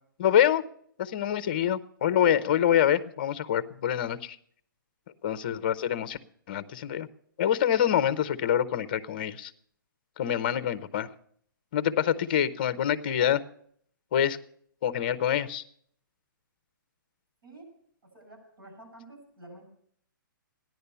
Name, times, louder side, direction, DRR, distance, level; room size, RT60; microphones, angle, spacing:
voice 1, 0.2-0.6 1.0-4.4 5.2-6.2 6.5-7.1 7.4-9.5 10.2-11.1 11.7-13.4 14.1-14.4 14.8-15.6, left 10 dB, 30° left, 15 dB, 0.6 m, -26 dB
voice 2, 18.0-19.7, right 2 dB, 85° right, 3 dB, 7.7 m, -50 dB
15.0 x 10.5 x 6.8 m, 0.64 s
hypercardioid pair, 175°, 11 cm